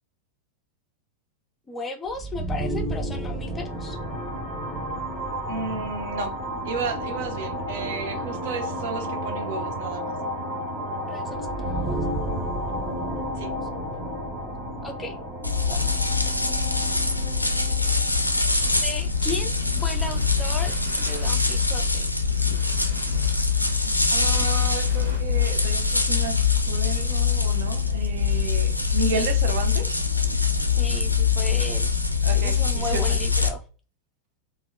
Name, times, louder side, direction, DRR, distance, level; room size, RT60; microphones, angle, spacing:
voice 1, 1.7-4.0 11.1-12.0 14.8-15.2 15.7-15.9 18.5-22.1 30.8-31.9 32.3-33.6, left 3 dB, 15° left, 0.4 m, -35 dB
sound 1, 2.1-19.7, equal, 10° right, 1.1 m, -32 dB
voice 2, 5.5-6.4 6.6-10.1 13.4-13.5 24.1-26.4 26.7-30.0 32.2-33.2, right 5 dB, 55° right, 0.5 m, -32 dB
sound 2, 15.4-33.5, left 5 dB, 85° left, 0.4 m, -23 dB
sound 3, 18.5-25.2, right 1 dB, 75° right, 0.9 m, -44 dB
3.4 x 2.1 x 2.3 m
figure-of-eight pair, 90°, 0 cm